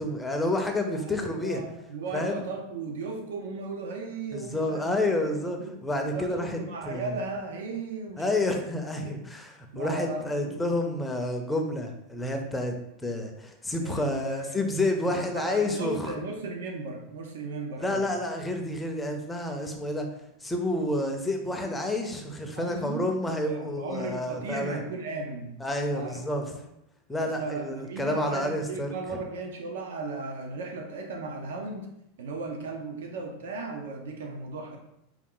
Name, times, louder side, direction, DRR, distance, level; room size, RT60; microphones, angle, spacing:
voice 1, 0.0-1.6 2.1-2.5 4.3-6.6 6.9-7.1 8.2-12.8 13.0-16.1 17.8-20.1 20.4-24.8 25.6-26.4 27.1-28.9, left 1 dB, 5° left, 3 dB, 0.5 m, -29 dB
voice 2, 0.9-5.3 5.6-5.7 6.1-8.7 9.0-9.2 9.7-10.6 13.8-14.6 15.0-18.0 22.5-23.1 23.4-25.5 25.9-26.2 26.5-26.6 27.2-31.9 32.2-34.8, right 3 dB, 85° right, 2 dB, 0.7 m, -36 dB
4.6 x 2.3 x 3.7 m, 0.83 s
supercardioid pair, 155°, 0 cm